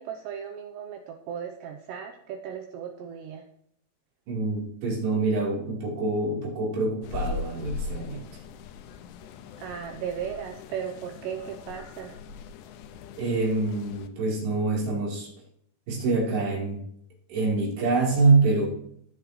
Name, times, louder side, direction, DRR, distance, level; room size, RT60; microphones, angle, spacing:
voice 1, 0.0-3.5 9.6-12.2, right 8 dB, 85° right, 4 dB, 2.5 m, -36 dB
voice 2, 4.3-8.3 13.2-15.3 15.9-16.8 17.3-18.7, right 3 dB, 55° right, -4 dB, 5.6 m, -25 dB
sound 1, 7.0-14.1, left 5 dB, 85° left, 2.5 m, -39 dB
17.5 x 9.3 x 3.2 m, 0.68 s
omnidirectional pair, 6.0 m